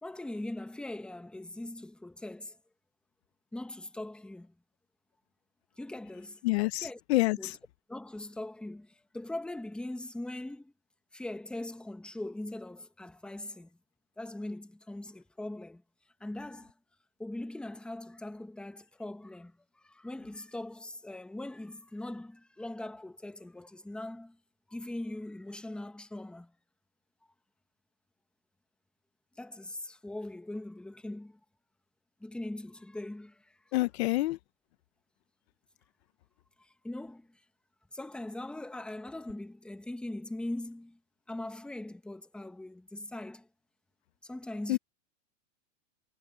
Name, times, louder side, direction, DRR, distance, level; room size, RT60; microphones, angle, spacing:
voice 1, 0.0-2.6 3.5-4.5 5.8-6.4 6.8-7.0 7.4-7.5 7.9-10.7 11.1-13.8 14.2-15.8 16.2-16.7 17.2-24.4 24.7-26.5 29.4-31.4 32.2-33.6 36.6-37.4 37.9-41.0 41.3-43.5 44.2-44.8, left 1 dB, ahead, 1.4 m, -41 dB
voice 2, 6.4-7.5 33.7-34.4 44.7-44.8, left 19 dB, 50° left, 1.0 m, -27 dB
supercardioid pair, 145°, 40 cm